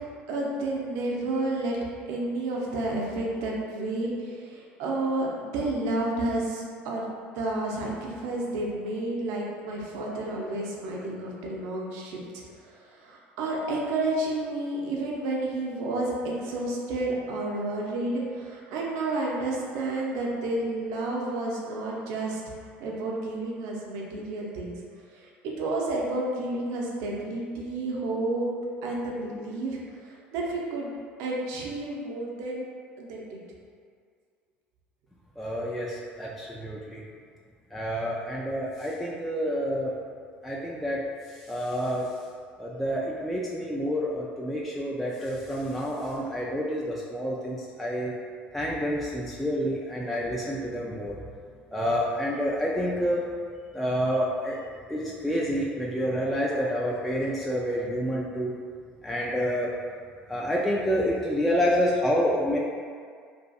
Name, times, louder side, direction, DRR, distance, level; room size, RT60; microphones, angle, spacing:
voice 1, 0.3-1.8 2.1-7.1 7.3-22.4 22.8-24.7 25.1-28.5 28.8-30.9 31.2-32.7 33.0-33.4, right 2 dB, 65° right, -2 dB, 0.5 m, -31 dB
voice 2, 35.4-37.0 37.7-39.9 40.4-41.0 41.5-42.1 42.6-48.1 48.5-51.2 51.7-53.2 53.7-54.6 54.9-58.5 59.0-59.7 60.3-62.6, equal, ahead, -5 dB, 0.3 m, -28 dB
2.6 x 2.5 x 2.3 m, 2.1 s
hypercardioid pair, 65°, 6 cm